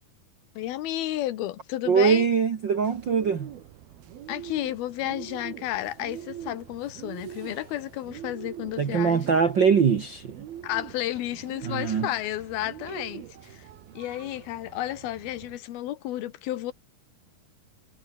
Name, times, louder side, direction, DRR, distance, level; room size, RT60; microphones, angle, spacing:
voice 1, 0.6-2.3 4.3-9.3 10.6-13.7 13.9-16.7, left 14 dB, 85° left, 3.2 m, -32 dB
voice 2, 1.9-3.5 8.8-10.4 11.6-12.1, right 6 dB, 55° right, 1.2 m, -22 dB
Bird, 2.8-15.6, right 11 dB, 80° right, 3.8 m, -43 dB
omnidirectional pair, 4.2 m